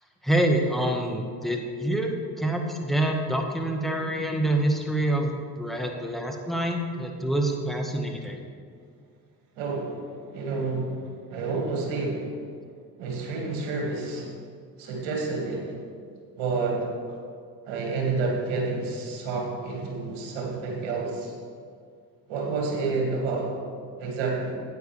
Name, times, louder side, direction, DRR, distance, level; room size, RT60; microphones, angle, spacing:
voice 1, 0.2-5.3 5.6-8.4, right 1 dB, ahead, 2 dB, 1.5 m, -26 dB
voice 2, 9.6-10.0 10.3-10.9 11.3-12.3 13.0-14.3 14.8-15.7 16.4-16.8 17.7-21.3 22.3-23.5 24.0-24.5, right 3 dB, 70° right, -1 dB, 2.2 m, -29 dB
13.0 x 9.1 x 3.4 m, 2.2 s
hypercardioid pair, 45°, 48 cm